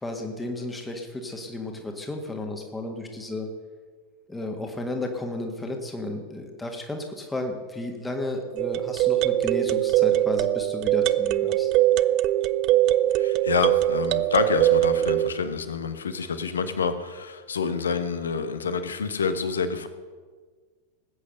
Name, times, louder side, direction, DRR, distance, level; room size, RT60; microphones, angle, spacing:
voice 1, 0.0-3.5 4.3-11.7, left 2 dB, 10° left, 3 dB, 1.8 m, -33 dB
sound 1, 8.6-15.3, right 14 dB, 40° right, 0.4 m, -22 dB
voice 2, 13.1-19.9, left 5 dB, 70° left, 10 dB, 1.2 m, -27 dB
20.0 x 8.6 x 6.6 m, 1.5 s
figure-of-eight pair, 90°, 0 cm